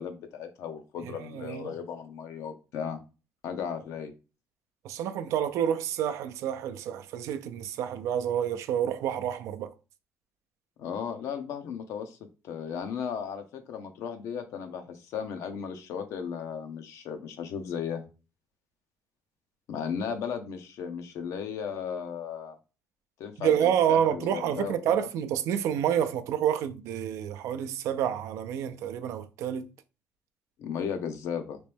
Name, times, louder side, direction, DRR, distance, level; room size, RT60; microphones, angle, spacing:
voice 1, 0.0-3.0 3.4-4.1 10.8-12.2 12.4-18.0 19.7-22.6 23.2-25.1 30.6-31.6, left 7 dB, 80° left, 0.7 m, -35 dB
voice 2, 1.0-1.7 4.8-9.7 23.4-29.7, right 9 dB, 85° right, 0.4 m, -28 dB
3.0 x 3.0 x 3.3 m
cardioid pair, 115°, 5 cm